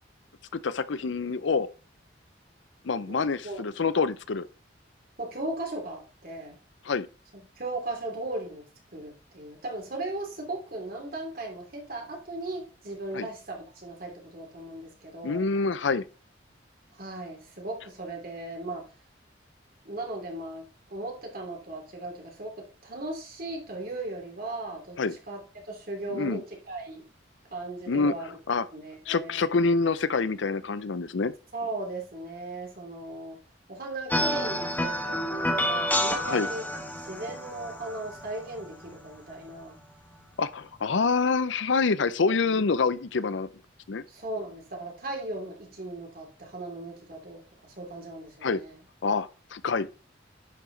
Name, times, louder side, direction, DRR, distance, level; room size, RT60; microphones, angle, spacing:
voice 1, 0.5-1.7 2.8-4.5 6.9-7.1 13.1-13.3 15.2-16.0 25.0-25.1 26.1-26.4 27.9-28.1 28.5-28.6 29.1-31.3 36.3-36.5 40.4-43.5 43.9-44.0 48.4-48.6 49.0-49.9, left 4 dB, 70° left, 0.6 m, -26 dB
voice 2, 3.1-3.6 5.2-6.6 7.3-8.6 8.9-15.5 16.9-18.9 19.8-25.0 25.3-27.1 27.5-28.3 28.7-29.4 31.5-33.4 33.7-36.6 37.0-39.8 42.4-42.6 44.1-48.8, right 2 dB, 50° right, 2.8 m, -37 dB
sound 1, 34.1-39.5, equal, 10° left, 1.5 m, -29 dB
10.5 x 5.0 x 3.9 m
head